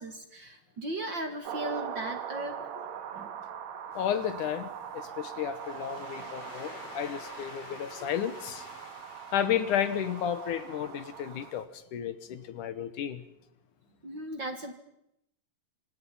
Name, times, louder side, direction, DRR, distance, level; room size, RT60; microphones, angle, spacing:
voice 1, 0.0-2.5 3.1-3.4 14.0-14.7, right 1 dB, 40° right, 6 dB, 2.2 m, -37 dB
sound 1, 1.4-11.6, right 8 dB, 60° right, 2.4 m, -41 dB
voice 2, 3.9-4.7 4.9-8.7 9.3-13.2, left 9 dB, 70° left, 12 dB, 2.6 m, -32 dB
Waves surf, 3.9-11.6, left 3 dB, 45° left, 5.1 m, -50 dB
27.0 x 27.0 x 5.7 m, 0.80 s
omnidirectional pair, 4.0 m